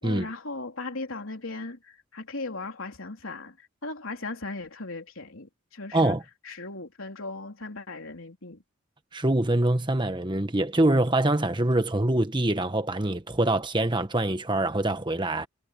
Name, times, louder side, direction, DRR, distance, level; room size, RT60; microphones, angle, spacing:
voice 1, 0.0-6.2 6.4-8.6, left 3 dB, 75° left, 3.7 m, -37 dB
voice 2, 5.9-6.2 9.1-15.5, right 1 dB, 20° right, 1.3 m, -24 dB
head